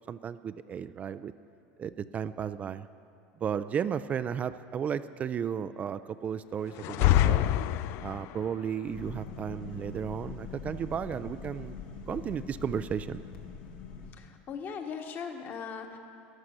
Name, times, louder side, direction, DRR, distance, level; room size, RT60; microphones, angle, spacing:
voice 1, 0.1-1.3 1.8-2.9 3.4-7.5 8.0-11.8 12.1-13.2, right 8 dB, 30° right, 13 dB, 0.3 m, -34 dB
sound 1, 6.8-8.4, left 13 dB, 55° left, 0.3 m, -25 dB
sound 2, 8.9-14.1, left 5 dB, 80° left, 1.6 m, -43 dB
voice 2, 14.1-16.0, left 6 dB, 40° left, 5 dB, 1.4 m, -39 dB
14.5 x 11.0 x 6.5 m, 2.6 s
supercardioid pair, 125°, 5 cm